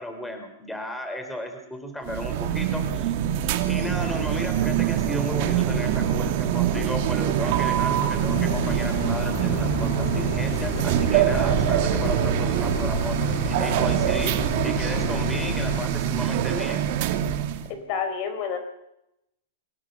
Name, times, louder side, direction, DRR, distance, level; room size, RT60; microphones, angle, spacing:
voice 1, 0.0-3.1 3.6-14.4 14.6-16.8, left 1 dB, 5° left, 6 dB, 4.6 m, -34 dB
sound 1, 2.1-17.7, right 10 dB, 55° right, 2.4 m, -24 dB
sound 2, 8.3-15.9, left 9 dB, 70° left, 1.7 m, -33 dB
sound 3, 8.9-14.3, right 1 dB, 15° right, 3.7 m, -42 dB
voice 2, 17.7-18.6, left 7 dB, 50° left, 8 dB, 4.5 m, -29 dB
23.5 x 18.0 x 7.1 m, 0.82 s
hypercardioid pair, 120°, 0 cm